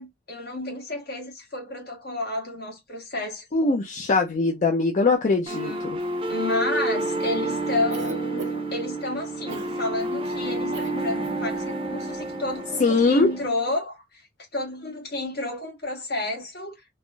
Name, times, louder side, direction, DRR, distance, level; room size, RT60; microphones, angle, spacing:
voice 1, 0.0-3.4 5.5-5.9 6.3-14.2 14.5-16.7, left 2 dB, 60° left, 1.5 m, -31 dB
voice 2, 3.5-6.0 12.8-13.3, left 3 dB, 45° left, 0.4 m, -21 dB
sound 1, 5.5-13.5, right 2 dB, 30° right, 0.5 m, -29 dB
Cough, 7.9-8.8 9.5-9.7 10.7-10.9 11.2-11.4, right 4 dB, 75° right, 0.6 m, -37 dB
3.3 x 2.5 x 2.2 m
head